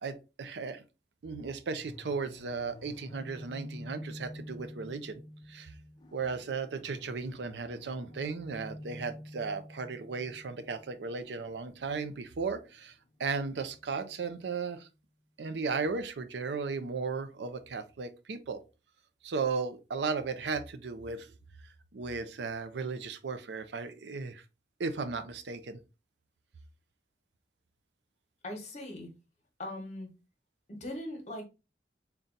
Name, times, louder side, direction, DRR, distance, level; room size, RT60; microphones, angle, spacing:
voice 1, 0.0-0.8 1.2-5.2 5.5-5.7 6.1-12.9 13.2-14.9 15.4-18.6 19.2-21.3 21.9-24.4 24.8-25.8, right 4 dB, 75° right, 0.5 m, -35 dB
sound 1, 1.7-14.5, left 1 dB, 25° left, 0.5 m, -49 dB
voice 2, 28.4-29.1 29.6-30.1 30.7-31.5, left 1 dB, 40° left, 1.1 m, -40 dB
4.0 x 2.3 x 3.8 m
head